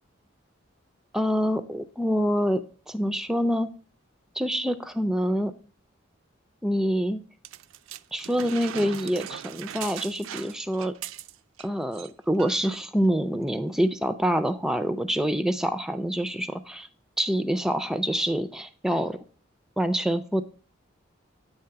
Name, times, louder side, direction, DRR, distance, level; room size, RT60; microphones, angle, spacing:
voice 1, 1.1-3.7 4.4-5.5 6.6-7.2 8.1-10.9 11.6-16.9 17.2-19.2 19.8-20.4, equal, 5° right, 10 dB, 0.3 m, -26 dB
sound 1, 7.4-11.7 11.9-12.1 12.4-12.8 13.5-13.6, right 10 dB, 80° right, 0.3 m, -39 dB
8.7 x 3.3 x 5.6 m, 0.40 s
head